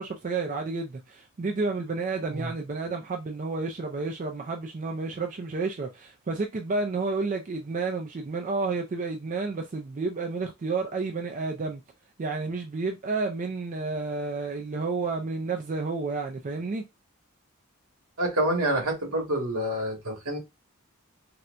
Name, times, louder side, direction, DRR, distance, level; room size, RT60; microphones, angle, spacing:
voice 1, 0.0-11.8 12.2-16.8, right 3 dB, 35° right, 0.3 m, -31 dB
voice 2, 18.2-20.4, right 1 dB, 80° right, 1.5 m, -27 dB
4.2 x 2.2 x 2.5 m
head